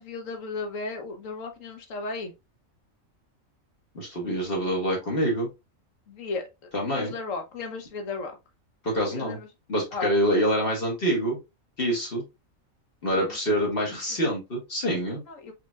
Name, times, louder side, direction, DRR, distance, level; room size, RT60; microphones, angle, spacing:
voice 1, 0.0-2.3 6.1-6.4 6.8-8.3 9.0-9.5 9.9-10.1 15.3-15.5, left 4 dB, 70° left, 1.3 m, -34 dB
voice 2, 3.9-5.5 6.7-7.1 8.8-9.4 9.7-11.4 11.8-12.2 13.0-15.2, equal, 45° left, 1.6 m, -26 dB
4.8 x 3.2 x 2.3 m
omnidirectional pair, 1.4 m